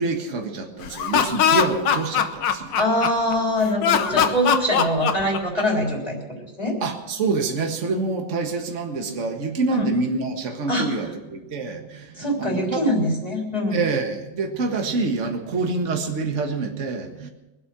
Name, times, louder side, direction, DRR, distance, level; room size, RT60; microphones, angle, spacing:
voice 1, 0.0-2.8 4.1-4.4 6.8-12.8 13.7-17.3, right 3 dB, 45° right, 4 dB, 1.8 m, -26 dB
Laughter, 0.8-3.3 3.8-5.8, left 8 dB, 80° left, 1.7 m, -21 dB
voice 2, 2.8-6.8 9.7-9.9 10.7-10.9 12.2-13.8, equal, 20° left, -1 dB, 3.7 m, -23 dB
23.0 x 8.5 x 6.1 m, 1.0 s
omnidirectional pair, 2.0 m